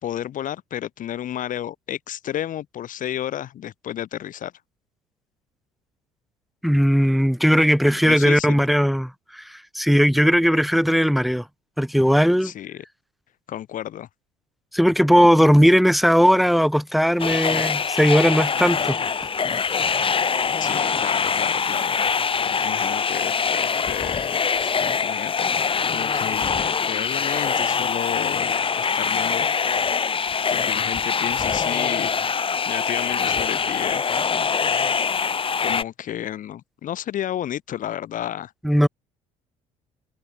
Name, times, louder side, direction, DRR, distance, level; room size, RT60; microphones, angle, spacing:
voice 1, 0.0-4.5 8.0-8.6 12.4-12.8 13.5-14.1 20.6-29.5 30.5-32.1 32.6-34.1 35.6-38.5, left 11 dB, 55° left, 1.8 m, -32 dB
voice 2, 6.6-11.5 11.8-12.5 14.7-19.0 38.6-38.9, equal, ahead, 2.4 m, -18 dB
sound 1, 17.2-35.8, left 6 dB, 30° left, 1.6 m, -23 dB
hypercardioid pair, 60°, 17 cm